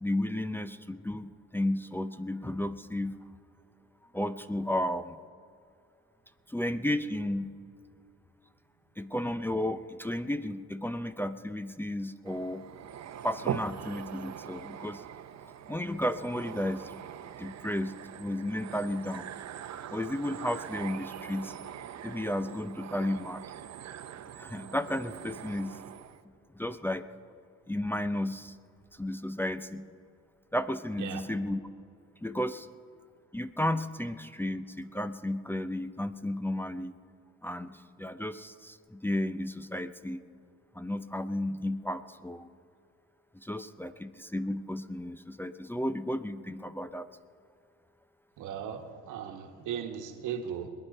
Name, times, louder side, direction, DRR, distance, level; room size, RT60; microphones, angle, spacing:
voice 1, 0.0-3.2 4.1-5.2 6.5-7.5 9.0-12.6 13.2-15.0 15.7-16.9 17.4-19.3 19.9-21.5 22.0-23.4 24.4-25.8 26.6-27.1 27.7-28.6 29.0-29.9 30.5-31.6 32.2-32.7 33.3-36.9 37.4-40.2 40.7-42.5 43.4-47.1, left 1 dB, 5° left, 9 dB, 0.5 m, -33 dB
sound 1, 12.3-26.2, right 9 dB, 60° right, 0.8 m, -42 dB
voice 2, 48.4-50.7, right 8 dB, 85° right, 6 dB, 1.5 m, -37 dB
21.5 x 9.7 x 5.4 m, 2.4 s
cardioid pair, 90°, 30 cm